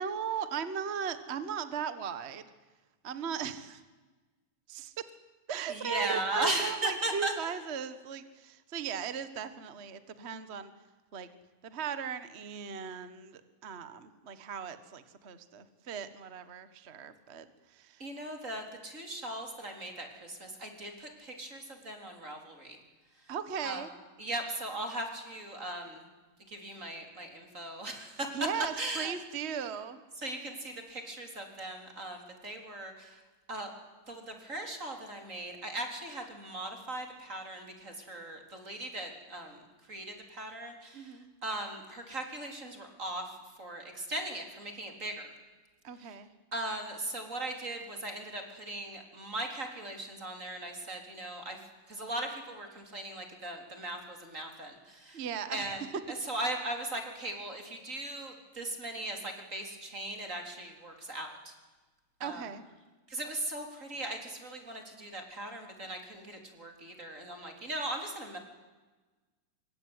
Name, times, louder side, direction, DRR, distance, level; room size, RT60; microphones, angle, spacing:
voice 1, 0.0-2.5 3.0-3.8 4.7-5.0 5.5-10.7 11.1-11.3 11.6-18.0 23.3-23.9 28.3-30.0 40.9-41.3 45.8-46.3 55.1-55.7 62.2-62.6, right 7 dB, 85° right, 12 dB, 0.5 m, -37 dB
voice 2, 5.7-7.5 18.0-22.8 23.6-23.8 24.2-26.0 26.5-28.3 28.8-29.1 30.2-33.2 33.5-33.7 34.1-43.3 43.6-45.3 46.0-46.1 46.5-51.6 51.9-55.2 55.5-55.8 56.1-61.5 62.2-62.4 63.1-68.4, right 1 dB, 20° right, 4 dB, 4.1 m, -38 dB
25.5 x 23.5 x 9.8 m, 1.2 s
omnidirectional pair, 3.9 m